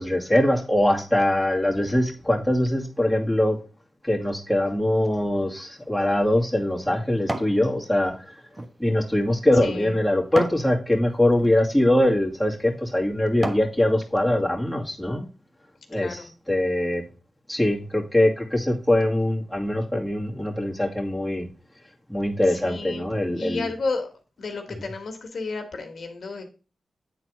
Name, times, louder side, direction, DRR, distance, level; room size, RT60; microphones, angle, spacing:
voice 1, 0.0-3.6 4.0-8.3 8.8-15.3 15.9-16.2 16.5-17.0 17.5-21.5 22.1-23.6, left 1 dB, 5° left, -2 dB, 2.4 m, -22 dB
sound 1, 5.8-7.6 8.1-10.7 11.3-11.5 12.2-12.4 12.9-13.8 14.2-14.3, right 1 dB, 30° right, 1.2 m, -35 dB
voice 2, 9.5-10.0 15.9-16.3 22.5-23.1 23.3-24.1 24.4-26.4, left 3 dB, 75° left, 5 dB, 1.6 m, -32 dB
9.1 x 4.0 x 4.6 m, 0.34 s
cardioid pair, 60°, 0 cm